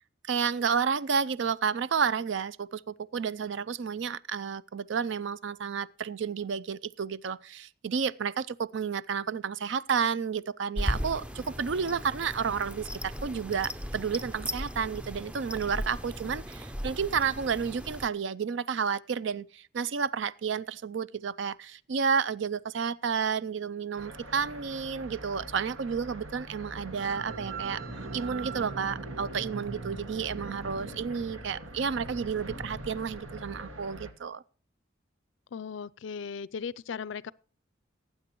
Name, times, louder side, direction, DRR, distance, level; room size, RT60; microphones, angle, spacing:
voice 1, 0.2-27.8 28.1-34.4, right 6 dB, 65° right, 0.4 m, -31 dB
sound 1, 7.2-7.3 9.1-10.1 10.7-11.4 12.3-12.4, right 4 dB, 50° right, 5.8 m, -54 dB
sound 2, 10.8-18.1, equal, 5° right, 0.5 m, -37 dB
sound 3, 24.0-34.1, right 2 dB, 90° right, 1.9 m, -41 dB
voice 2, 35.5-37.3, left 6 dB, 70° left, 0.4 m, -37 dB
19.5 x 8.7 x 3.0 m
head